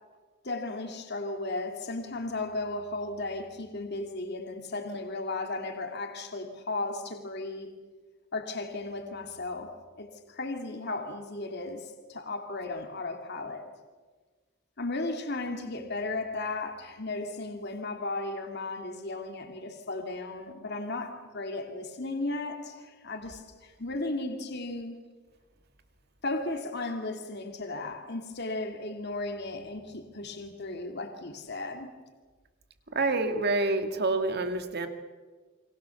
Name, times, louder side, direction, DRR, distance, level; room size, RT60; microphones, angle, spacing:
voice 1, 0.4-7.7 8.3-9.7 10.0-13.6 14.8-25.0 26.2-31.9, left 2 dB, 50° left, 4 dB, 2.7 m, -35 dB
voice 2, 32.9-34.9, right 2 dB, 50° right, 7 dB, 2.3 m, -27 dB
29.5 x 23.5 x 7.2 m, 1.4 s
head